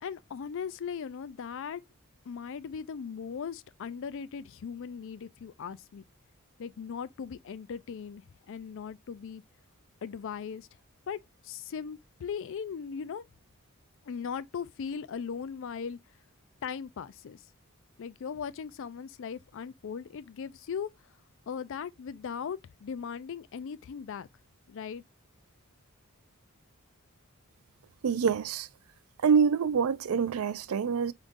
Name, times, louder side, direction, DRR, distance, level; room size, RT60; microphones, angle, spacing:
voice 1, 0.0-1.8 2.3-6.0 6.6-9.4 10.0-10.7 11.1-11.2 11.4-13.2 14.1-16.0 16.6-17.4 18.0-20.9 21.5-24.3 24.7-25.0, left 6 dB, 60° left, 0.4 m, -38 dB
voice 2, 28.0-28.7 29.2-31.1, right 6 dB, 75° right, 0.4 m, -26 dB
5.1 x 3.7 x 2.5 m
head